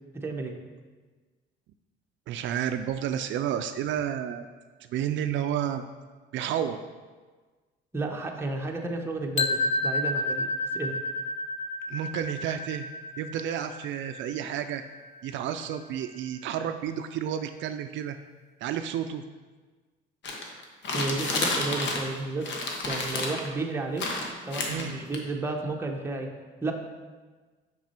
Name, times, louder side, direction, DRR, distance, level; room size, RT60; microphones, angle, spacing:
voice 1, 0.1-0.5 7.9-11.0 20.9-22.5 22.8-24.0 24.4-26.3 26.6-26.7, right 3 dB, 10° right, 1 dB, 0.8 m, -32 dB
voice 2, 2.3-4.4 4.9-5.8 6.3-6.8 11.9-12.9 13.2-14.8 15.2-18.2 18.6-19.2 24.7-24.9, right 9 dB, 65° right, 8 dB, 0.4 m, -31 dB
sound 1, 9.4-15.3, left 2 dB, 35° left, 0.4 m, -31 dB
sound 2, 20.2-22.2 22.4-23.5 24.0-25.2, left 3 dB, 60° left, 1.2 m, -30 dB
6.1 x 5.9 x 4.3 m, 1.4 s
cardioid pair, 130°, 21 cm